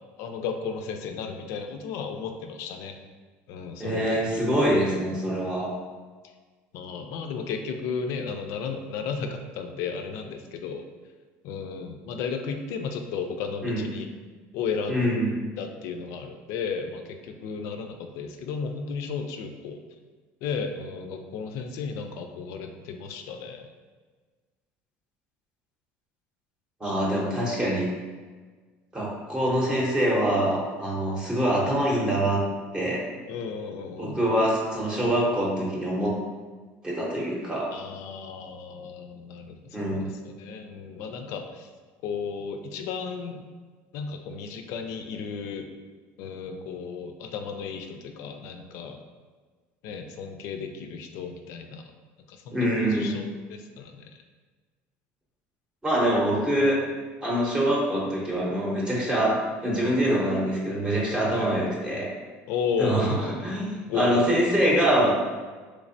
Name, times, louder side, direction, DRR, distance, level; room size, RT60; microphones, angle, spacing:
voice 1, 0.2-2.9 3.5-4.5 4.8-5.0 6.7-10.8 11.4-14.1 14.5-15.1 15.6-19.8 20.4-23.7 33.3-34.2 37.7-41.7 42.0-43.4 43.9-45.7 46.2-49.0 49.8-51.9 52.3-54.1 61.3-61.5 62.5-63.2 63.9-64.5, left 5 dB, 70° left, 5 dB, 0.4 m, -34 dB
voice 2, 3.8-5.7 13.6-13.9 14.9-15.3 26.8-27.9 28.9-32.4 32.7-33.0 34.0-36.1 36.8-37.7 39.7-40.1 52.5-53.2 55.8-56.8 57.2-59.3 59.6-62.1 62.8-65.1, right 1 dB, 15° right, -4 dB, 0.7 m, -24 dB
3.3 x 3.2 x 2.6 m, 1.4 s
cardioid pair, 135°, 5 cm